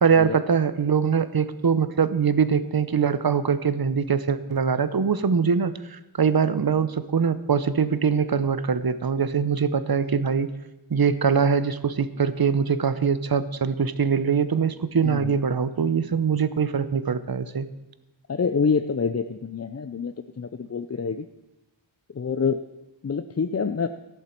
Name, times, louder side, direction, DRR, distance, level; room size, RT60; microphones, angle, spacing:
voice 1, 0.0-10.5 10.9-17.7, right 6 dB, 50° right, 13 dB, 0.8 m, -23 dB
voice 2, 15.0-15.4 18.3-21.3 22.1-22.6 23.0-23.9, left 5 dB, 35° left, 10 dB, 0.5 m, -26 dB
14.5 x 11.0 x 4.4 m, 0.97 s
wide cardioid pair, 55°, 47 cm